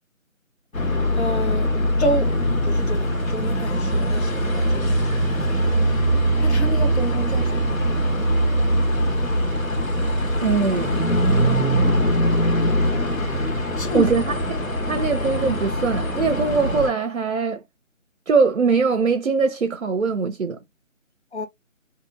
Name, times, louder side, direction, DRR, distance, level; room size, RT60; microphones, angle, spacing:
sound 1, 0.7-16.9, equal, 80° left, 1.4 m, -22 dB
voice 1, 1.1-1.7 2.0-2.3 2.6-5.1 5.5-5.7 6.4-7.8 11.4-11.9 13.8-14.1 21.3-21.5, left 1 dB, 55° left, 0.9 m, -29 dB
voice 2, 10.4-11.0 13.9-14.6 14.9-17.6 18.3-20.6, right 4 dB, 65° right, 0.6 m, -21 dB
2.8 x 2.5 x 2.4 m
figure-of-eight pair, 160°, 40 cm